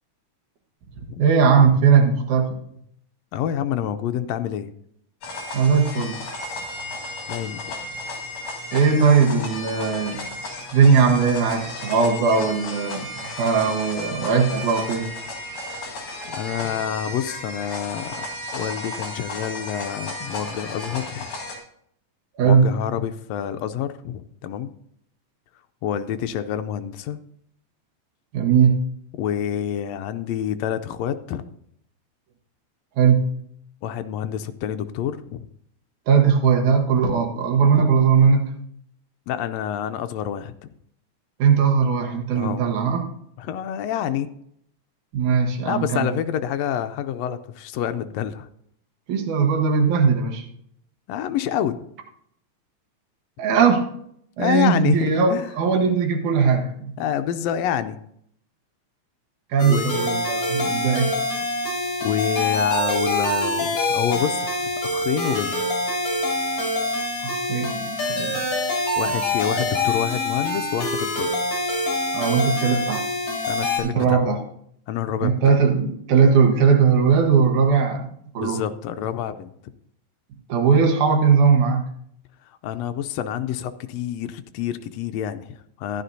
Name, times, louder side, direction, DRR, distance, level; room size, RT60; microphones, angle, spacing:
voice 1, 1.0-2.6 5.5-6.2 8.7-15.1 22.4-22.7 28.3-28.8 33.0-33.3 36.1-38.5 41.4-43.1 45.1-46.1 49.1-50.5 53.4-53.9 54.4-57.0 59.5-61.2 67.2-68.4 72.1-73.1 73.8-74.4 75.2-78.1 78.3-78.6 80.5-81.9, right 6 dB, 75° right, 2 dB, 2.7 m, -19 dB
voice 2, 3.3-4.7 7.3-7.6 16.3-18.2 18.5-21.3 22.4-24.7 25.8-27.2 29.2-31.5 33.8-35.5 39.3-40.5 42.3-42.6 43.4-44.3 45.6-48.5 51.1-51.8 54.4-55.5 57.0-58.0 59.7-60.1 62.0-65.6 69.0-71.4 73.5-74.2 74.9-75.3 78.4-79.5 82.5-86.0, left 9 dB, 90° left, 9 dB, 1.5 m, -27 dB
sound 1, 5.2-21.6, left 2 dB, 75° left, 3.2 m, -34 dB
sound 2, 59.6-73.8, left 2 dB, 55° left, 4.1 m, -25 dB
14.5 x 10.5 x 2.7 m, 0.70 s
omnidirectional pair, 3.6 m